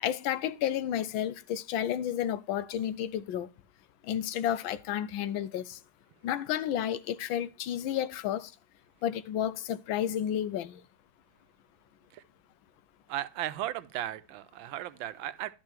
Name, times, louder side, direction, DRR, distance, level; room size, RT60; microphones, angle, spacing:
voice 1, 0.0-3.5 4.0-5.8 6.2-8.5 9.0-10.8, left 10 dB, 85° left, 1.4 m, -31 dB
voice 2, 13.1-15.5, right 13 dB, 80° right, 1.4 m, -36 dB
11.5 x 4.7 x 4.5 m
omnidirectional pair, 2.2 m